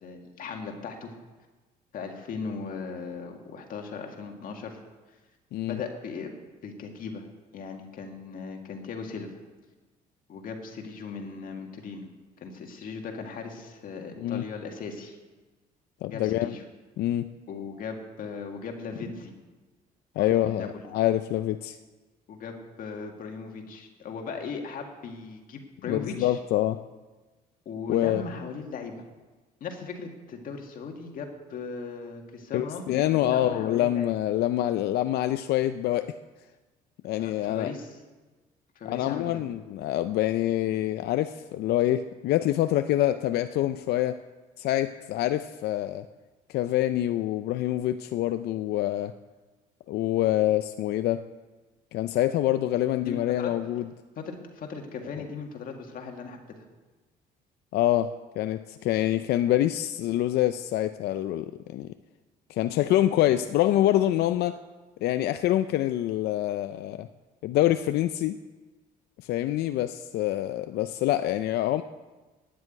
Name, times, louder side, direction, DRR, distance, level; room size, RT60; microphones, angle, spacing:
voice 1, 0.0-1.1 1.9-4.8 5.7-6.3 6.6-7.3 7.5-9.3 10.3-12.1 12.4-15.2 16.1-16.6 17.5-19.3 20.2-20.8 22.3-26.4 27.7-29.0 29.6-34.1 37.2-38.0 38.8-39.3 53.1-53.5 54.2-56.4, left 5 dB, 55° left, 3 dB, 2.0 m, -38 dB
voice 2, 16.0-16.5 17.0-17.3 20.2-21.8 25.9-26.8 27.9-28.2 32.5-36.1 37.0-37.7 38.9-44.2 44.6-46.1 46.5-49.1 49.9-51.2 51.9-53.9 57.7-58.1 58.4-61.9 62.5-64.6 65.0-67.1 67.4-68.4 69.2-71.8, left 13 dB, 70° left, 10 dB, 0.5 m, -26 dB
9.9 x 7.9 x 9.3 m, 1.3 s
cardioid pair, 110°, 17 cm